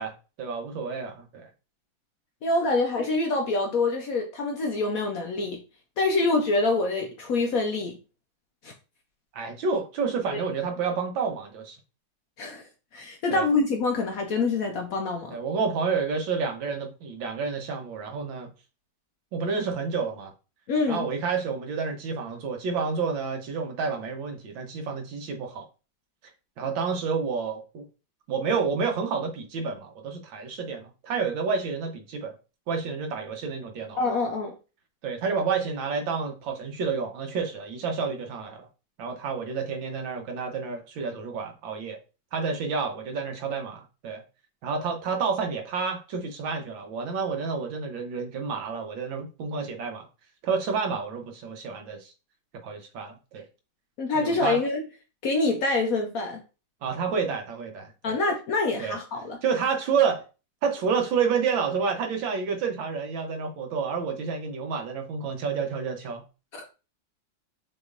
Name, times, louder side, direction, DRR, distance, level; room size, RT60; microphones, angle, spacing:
voice 1, 0.0-1.5 9.3-11.8 13.3-13.5 15.3-18.5 19.3-20.3 20.9-25.7 26.6-27.8 28.3-32.3 32.7-34.0 35.0-38.7 39.0-42.0 42.3-44.2 44.6-50.1 50.4-52.1 52.6-53.4 54.1-54.6 56.8-58.1 58.8-59.0 59.4-60.2 60.6-66.2, right 5 dB, 80° right, 1.6 m, -29 dB
voice 2, 2.4-5.6 6.0-8.0 8.6-8.7 10.3-10.4 12.4-12.7 12.9-15.4 20.7-21.1 34.0-34.5 54.0-54.9 55.2-56.4 58.0-59.4 66.5-66.6, left 3 dB, 65° left, 0.9 m, -26 dB
5.9 x 3.0 x 2.5 m
omnidirectional pair, 2.1 m